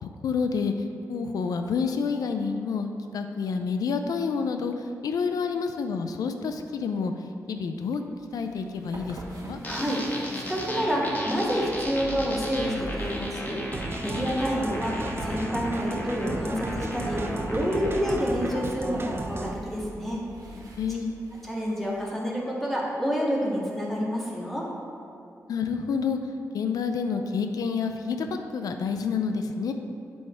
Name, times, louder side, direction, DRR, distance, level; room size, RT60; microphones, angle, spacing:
voice 1, 0.0-7.1 7.5-8.0 8.3-9.6 20.4-21.1 25.5-26.2 26.5-29.7, left 5 dB, 90° left, 6 dB, 0.5 m, -29 dB
sound 1, 8.2-22.1, right 1 dB, 80° right, 1.2 m, -42 dB
sound 2, 9.6-18.6, left 1 dB, 30° left, 1.6 m, -34 dB
voice 2, 9.6-13.6 14.0-15.0 15.2-17.2 17.5-20.2 21.4-24.7, equal, ahead, -5 dB, 1.9 m, -28 dB
sound 3, 13.7-19.6, right 2 dB, 40° right, 0.6 m, -35 dB
8.0 x 5.5 x 4.4 m, 2.6 s
cardioid pair, 75°, 6 cm